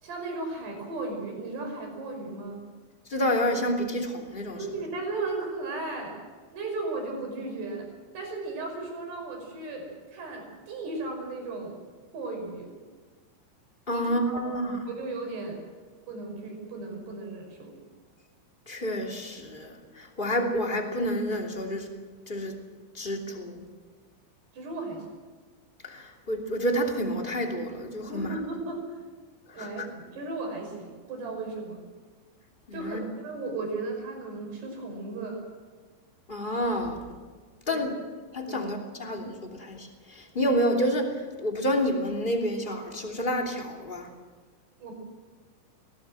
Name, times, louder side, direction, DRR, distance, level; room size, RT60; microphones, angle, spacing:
voice 1, 0.0-2.6 4.6-6.2 6.5-7.9 8.1-11.8 12.1-12.7 13.9-14.1 14.4-14.6 14.9-15.6 16.1-17.8 24.5-25.1 28.1-29.0 29.5-31.9 32.7-35.4 37.7-37.9 38.5-38.6 44.8-44.9, right 3 dB, 60° right, 2 dB, 7.5 m, -35 dB
voice 2, 3.1-4.6 13.9-14.8 18.7-21.9 22.3-22.5 22.9-23.6 25.8-28.3 29.5-29.9 32.7-33.0 36.3-37.0 37.7-37.9 38.3-44.1, equal, 15° left, 1 dB, 2.0 m, -29 dB
22.5 x 18.5 x 7.6 m, 1.5 s
omnidirectional pair, 5.4 m